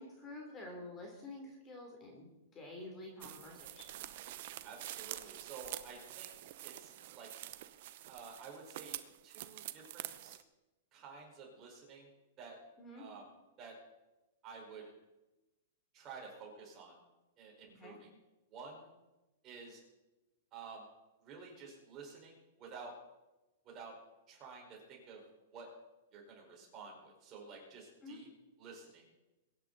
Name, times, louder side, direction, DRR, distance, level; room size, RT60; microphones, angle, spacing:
voice 1, 0.0-4.1 12.8-13.0 17.7-18.0 28.0-28.2, left 2 dB, 20° left, 1 dB, 3.1 m, -49 dB
sound 1, 3.2-10.4, right 14 dB, 50° right, 0.8 m, -47 dB
voice 2, 4.6-6.3 6.6-7.3 8.1-9.0 9.2-10.4 10.9-12.6 13.0-13.2 13.6-13.7 14.4-14.9 15.9-17.0 17.4-18.1 18.5-18.9 19.4-19.8 20.5-20.9 21.2-22.9 23.6-23.9 24.3-25.2 25.5-25.7 26.1-28.3 28.6-29.2, right 4 dB, 25° right, -1 dB, 4.7 m, -51 dB
22.5 x 10.0 x 4.0 m, 1.0 s
hypercardioid pair, 155°, 0 cm